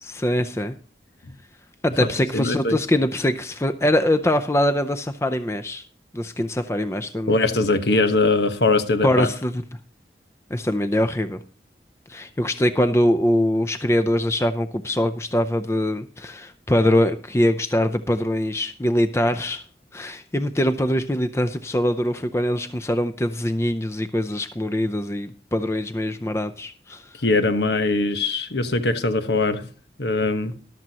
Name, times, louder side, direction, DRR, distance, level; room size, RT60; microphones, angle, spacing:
voice 1, 0.0-0.7 1.8-5.8 6.1-7.4 9.0-9.6 10.5-11.4 12.1-19.6 19.9-27.0, left 1 dB, 15° left, 0.5 m, -23 dB
voice 2, 2.0-2.8 7.3-9.3 27.2-29.7 30.0-30.5, left 3 dB, 75° left, 1.2 m, -21 dB
13.5 x 12.0 x 2.9 m
head